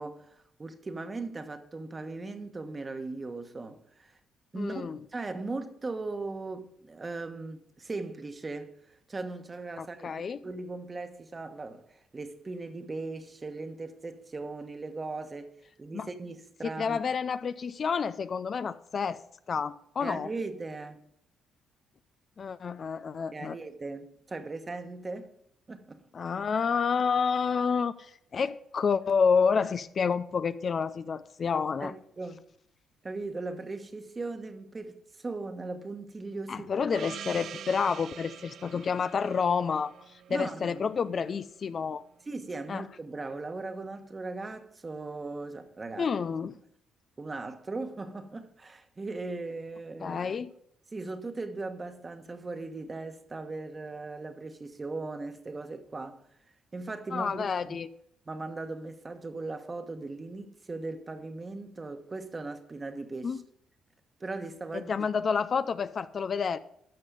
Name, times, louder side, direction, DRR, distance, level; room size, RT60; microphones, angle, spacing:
voice 1, 0.0-4.2 4.5-4.9 5.1-10.1 10.4-15.5 15.8-17.0 20.0-21.0 23.3-25.3 25.7-26.0 31.8-32.4 33.0-36.7 40.3-40.8 42.3-46.1 47.2-50.4 50.9-56.2 56.7-57.8 58.3-63.4 64.2-65.1, right 3 dB, 30° right, 1.3 m, -38 dB
voice 2, 4.5-5.0 9.8-10.4 15.9-16.1 16.6-19.2 19.5-20.3 22.4-23.6 26.1-31.9 36.5-39.9 40.3-42.0 42.7-42.8 46.0-46.5 50.0-50.5 57.1-57.9 63.2-63.4 64.9-66.6, left 6 dB, 50° left, 0.5 m, -29 dB
Gong, 36.9-41.3, right 9 dB, 65° right, 0.3 m, -45 dB
13.0 x 6.0 x 5.2 m
supercardioid pair, 75°, 0 cm